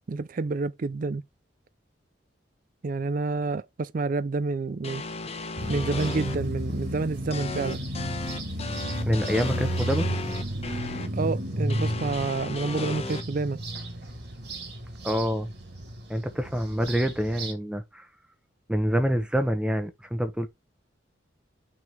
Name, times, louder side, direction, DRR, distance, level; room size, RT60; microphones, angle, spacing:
voice 1, 0.1-1.2 2.8-5.0 5.7-7.8 11.1-13.6, right 3 dB, 45° right, 0.4 m, -29 dB
sound 1, 4.8-6.3 7.3-11.1 11.7-13.2, left 3 dB, 35° left, 1.0 m, -35 dB
sound 2, 5.6-17.5, right 1 dB, 65° right, 2.4 m, -33 dB
voice 2, 9.1-10.1 15.0-15.5 16.1-18.1 18.7-20.5, equal, 5° right, 1.0 m, -26 dB
6.1 x 3.7 x 5.8 m
head